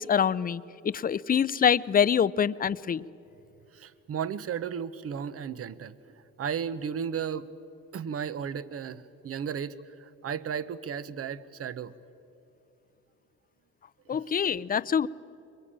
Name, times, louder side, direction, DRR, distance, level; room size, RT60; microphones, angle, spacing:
voice 1, 0.0-3.0 14.1-15.1, left 8 dB, 30° left, 18 dB, 0.5 m, -25 dB
voice 2, 3.7-5.9 6.4-7.5 7.9-12.0 14.1-14.3, right 7 dB, 50° right, 16 dB, 0.9 m, -34 dB
23.5 x 22.0 x 8.8 m, 2.8 s
cardioid pair, 90°, 30 cm